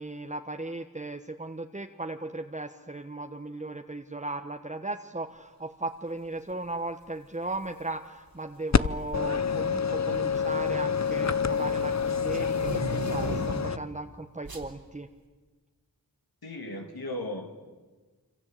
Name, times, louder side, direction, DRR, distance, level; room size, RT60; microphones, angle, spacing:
voice 1, 0.0-15.1, right 2 dB, 20° right, 5 dB, 1.3 m, -37 dB
sound 1, 7.5-7.8 8.8-9.2 9.6-13.9 14.4-14.7, right 1 dB, 75° right, 3.8 m, -38 dB
sound 2, 8.7-13.8, left 6 dB, 50° left, 0.9 m, -27 dB
voice 2, 16.4-17.6, left 1 dB, 85° left, 3 dB, 3.1 m, -36 dB
26.5 x 26.0 x 8.6 m, 1.3 s
wide cardioid pair, 55°, 36 cm